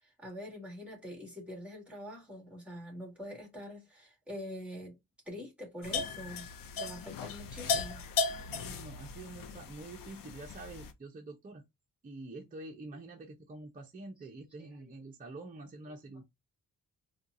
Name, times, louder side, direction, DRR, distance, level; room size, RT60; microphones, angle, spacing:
voice 1, 0.0-5.0 5.3-6.5 6.8-8.0 14.6-14.9 15.9-16.0, left 1 dB, 5° right, 1.8 m, -45 dB
sound 1, 5.8-10.9, left 4 dB, 75° left, 0.6 m, -36 dB
voice 2, 8.5-11.6 12.0-16.2, right 2 dB, 25° right, 0.6 m, -47 dB
4.3 x 2.3 x 2.5 m
wide cardioid pair, 160°, 34 cm